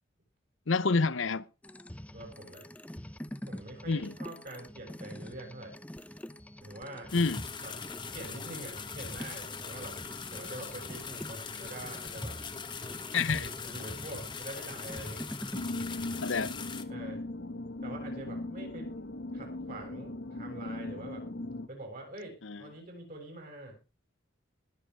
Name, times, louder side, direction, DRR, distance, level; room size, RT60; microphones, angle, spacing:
voice 1, 0.7-1.4 3.9-4.1 7.1-7.4 13.1-13.5 16.2-16.5 22.4-22.6, left 4 dB, 80° left, 0.8 m, -28 dB
sound 1, 1.6-16.2, equal, 5° left, 0.6 m, -45 dB
voice 2, 2.1-2.7 3.5-5.8 6.6-7.1 7.6-10.0 10.3-12.4 13.3-15.2 16.9-17.2 17.8-19.0 19.3-21.3 21.7-23.8, right 1 dB, 45° right, 7.7 m, -45 dB
sound 2, 7.1-16.8, left 5 dB, 25° left, 1.3 m, -41 dB
sound 3, 15.5-21.7, left 2 dB, 60° left, 1.2 m, -39 dB
20.5 x 7.7 x 4.8 m
head